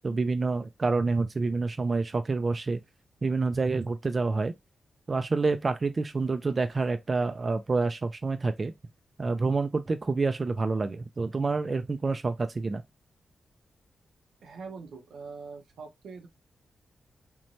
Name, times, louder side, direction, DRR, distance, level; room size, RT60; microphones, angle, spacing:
voice 1, 0.0-2.8 3.2-4.5 5.1-8.7 9.2-12.8, right 3 dB, 40° right, 0.3 m, -28 dB
voice 2, 14.4-16.3, right 4 dB, 85° right, 0.6 m, -43 dB
3.0 x 2.1 x 2.6 m
cardioid pair, 75°, 0 cm